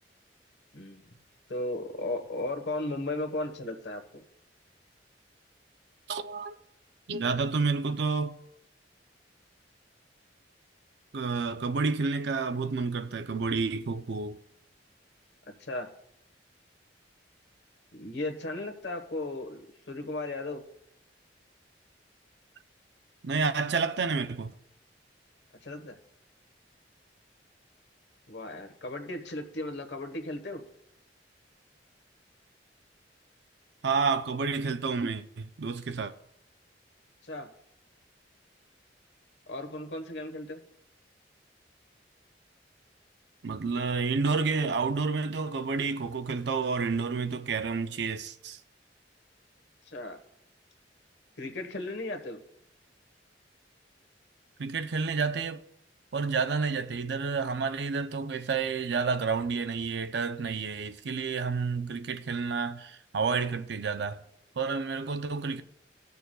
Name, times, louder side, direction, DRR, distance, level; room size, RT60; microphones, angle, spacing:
voice 1, 1.5-4.2 15.6-15.9 17.9-20.6 25.6-26.0 28.3-30.6 37.2-37.5 39.5-40.6 49.9-50.2 51.4-52.4, left 2 dB, 70° left, 1.2 m, -36 dB
voice 2, 6.1-6.5 7.1-8.4 11.1-14.4 23.2-24.5 33.8-36.1 43.4-48.6 54.6-55.6 56.1-64.2 64.6-65.6, right 4 dB, 70° right, 0.5 m, -30 dB
19.5 x 6.8 x 2.3 m
head